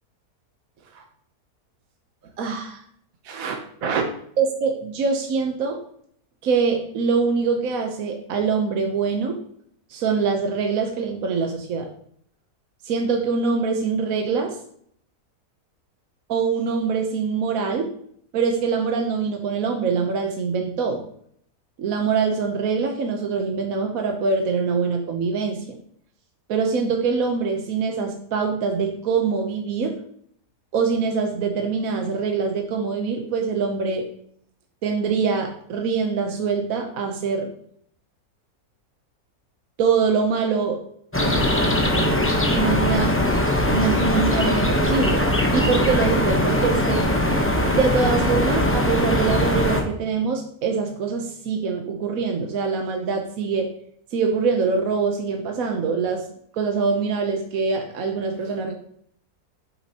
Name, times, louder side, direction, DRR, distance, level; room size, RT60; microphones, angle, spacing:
voice 1, 2.4-2.8 3.2-4.0 4.4-5.8 6.4-9.4 9.9-11.9 12.8-14.6 16.3-17.9 18.3-21.0 21.8-25.8 26.5-30.0 30.7-34.1 34.8-37.5 39.8-40.8 42.5-43.2 43.7-45.3 45.5-47.1 47.6-53.7 54.1-56.2 56.5-58.7, right 5 dB, 65° right, 3 dB, 1.2 m, -24 dB
sound 1, 41.1-49.8, left 1 dB, 10° left, 0.6 m, -21 dB
8.4 x 7.0 x 2.9 m, 0.66 s
omnidirectional pair, 1.7 m